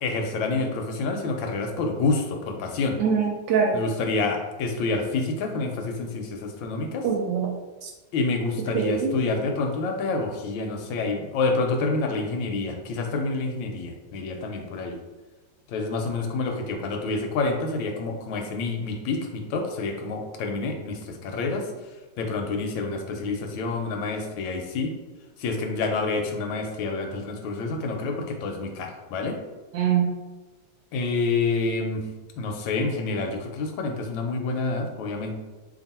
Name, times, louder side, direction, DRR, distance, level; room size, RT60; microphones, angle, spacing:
voice 1, 0.0-3.0 3.7-7.0 8.1-15.0 15.7-21.7 22.2-24.9 25.4-29.4 30.9-32.1 32.4-35.3, left 3 dB, 80° left, 3 dB, 1.3 m, -28 dB
voice 2, 3.0-3.8 7.0-7.6 7.8-7.9 8.7-9.1 29.7-30.1, right 6 dB, 75° right, 0 dB, 1.1 m, -23 dB
2.9 x 2.6 x 4.1 m, 1.2 s
omnidirectional pair, 2.2 m